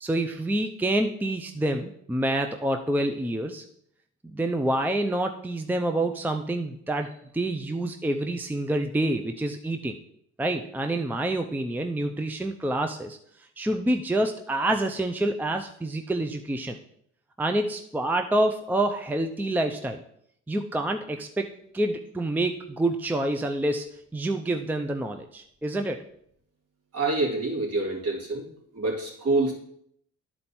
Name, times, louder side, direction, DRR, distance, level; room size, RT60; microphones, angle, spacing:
voice 1, 0.0-3.6 4.2-10.0 10.4-16.8 17.4-20.0 20.5-21.5 21.7-26.0, right 1 dB, 5° right, 5 dB, 0.5 m, -27 dB
voice 2, 26.9-28.5 28.7-29.5, right 2 dB, 55° right, -2 dB, 2.9 m, -26 dB
10.5 x 4.4 x 4.3 m, 0.69 s
cardioid pair, 90°, 30 cm